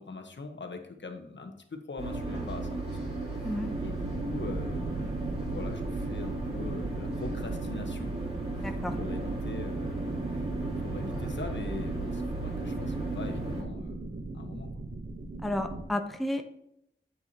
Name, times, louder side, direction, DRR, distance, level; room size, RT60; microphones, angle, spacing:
voice 1, 0.0-3.1 3.8-8.1 8.6-10.4 10.8-14.0 14.3-14.8, left 3 dB, 60° left, 5 dB, 1.1 m, -42 dB
sound 1, 2.0-13.6, right 2 dB, 30° right, 3.3 m, -35 dB
voice 2, 3.4-3.8 8.6-9.0 15.4-16.5, left 1 dB, ahead, 6 dB, 0.6 m, -32 dB
sound 2, 3.6-15.9, right 3 dB, 55° right, 0.9 m, -39 dB
8.3 x 8.1 x 2.8 m, 0.79 s
wide cardioid pair, 70°, 21 cm